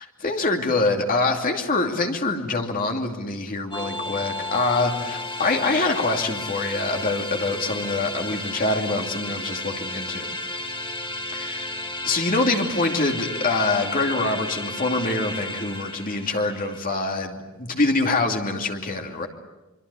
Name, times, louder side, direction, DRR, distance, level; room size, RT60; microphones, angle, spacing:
voice 1, 0.2-10.3 11.3-11.8 12.0-19.3, left 3 dB, 40° left, 3 dB, 2.7 m, -25 dB
sound 1, 3.7-16.8, left 2 dB, 25° left, 3.0 m, -33 dB
25.0 x 25.0 x 8.4 m, 1.0 s
head